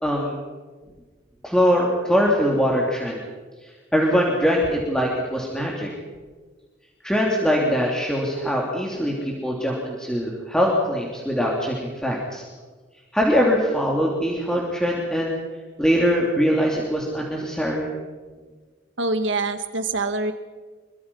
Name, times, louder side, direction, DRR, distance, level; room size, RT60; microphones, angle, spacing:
voice 1, 0.0-0.4 1.4-3.2 3.9-5.9 7.0-11.7 12.0-12.4 13.1-15.4 15.8-17.9, equal, 5° left, -3 dB, 3.2 m, -22 dB
voice 2, 19.0-20.3, right 2 dB, 70° right, 8 dB, 2.0 m, -25 dB
26.5 x 24.0 x 5.7 m, 1.4 s
head